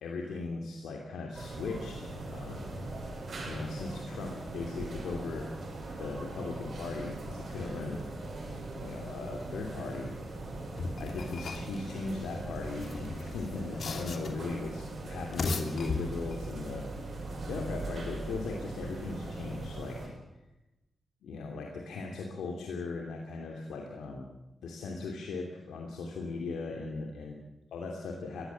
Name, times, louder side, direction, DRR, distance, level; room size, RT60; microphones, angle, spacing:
voice 1, 0.0-2.7 3.5-5.4 6.0-8.0 8.7-10.1 11.0-16.8 17.5-20.1 21.2-24.3 24.6-27.3 27.7-28.5, left 3 dB, 85° left, 1 dB, 2.9 m, -38 dB
sound 1, 1.3-20.1, right 2 dB, 60° right, 7.5 m, -40 dB
sound 2, 10.8-11.8 12.7-14.5 15.2-16.5, left 4 dB, 65° left, 2.8 m, -37 dB
22.0 x 15.5 x 8.6 m, 0.99 s
cardioid pair, 50°, 0 cm